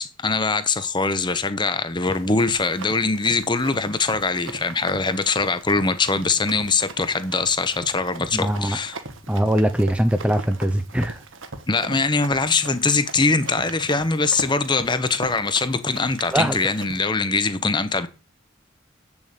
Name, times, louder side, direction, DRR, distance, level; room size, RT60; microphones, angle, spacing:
voice 1, 0.0-9.0 11.7-18.1, left 4 dB, 20° left, 0.9 m, -22 dB
Run, 2.0-17.0, right 3 dB, 75° right, 1.4 m, -39 dB
voice 2, 8.3-8.8 9.3-11.2 16.3-16.5, right 1 dB, 5° right, 0.6 m, -21 dB
8.2 x 7.2 x 8.3 m
head